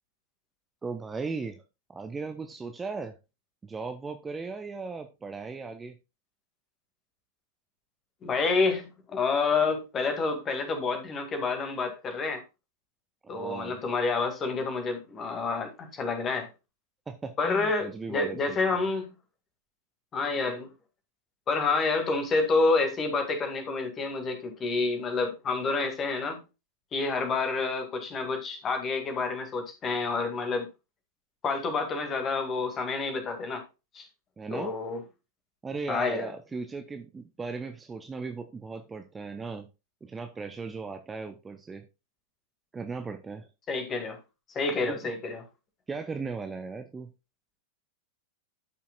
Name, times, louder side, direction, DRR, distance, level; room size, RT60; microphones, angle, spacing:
voice 1, 0.8-1.6 1.9-3.2 3.6-5.9 13.2-13.8 17.1-18.8 34.4-34.7 35.6-39.7 40.0-41.8 42.7-43.5 44.8-45.0 45.9-47.1, right 4 dB, 15° right, 0.7 m, -37 dB
voice 2, 8.2-12.4 13.3-16.5 17.4-19.1 20.1-20.7 21.5-26.4 26.9-30.7 31.4-33.6 33.9-34.1 34.5-35.0 35.9-36.3 43.7-44.2 44.5-45.4, left 4 dB, 25° left, 2.1 m, -28 dB
13.0 x 5.6 x 2.4 m
figure-of-eight pair, 90°, 0 cm